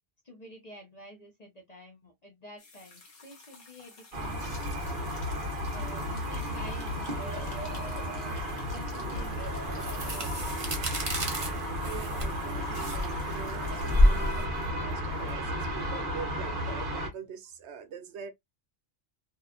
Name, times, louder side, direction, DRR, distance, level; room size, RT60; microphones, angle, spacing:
voice 1, 0.2-4.5 5.3-8.5 8.7-10.7, equal, 45° left, 0.8 m, -50 dB
sound 1, 2.6-14.5, left 3 dB, 60° left, 1.1 m, -53 dB
sound 2, 4.1-17.1, equal, 55° right, 1.1 m, -33 dB
sound 3, 9.2-15.9, equal, 35° right, 0.7 m, -29 dB
voice 2, 11.8-18.3, right 7 dB, 90° right, 0.9 m, -43 dB
2.7 x 2.3 x 2.3 m
omnidirectional pair, 1.1 m